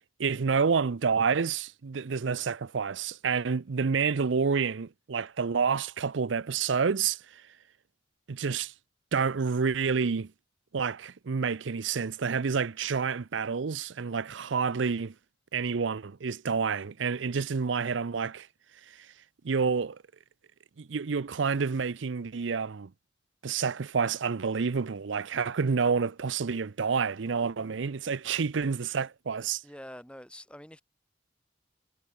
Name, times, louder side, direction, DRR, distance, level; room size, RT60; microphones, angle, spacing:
voice 1, 0.2-7.2 8.3-8.7 9.1-10.3 10.7-15.1 15.5-18.5 19.4-20.0 20.8-22.9 23.4-29.6, right 5 dB, 75° right, 0.6 m, -28 dB
voice 2, 29.6-30.8, left 1 dB, 5° left, 5.0 m, -46 dB
head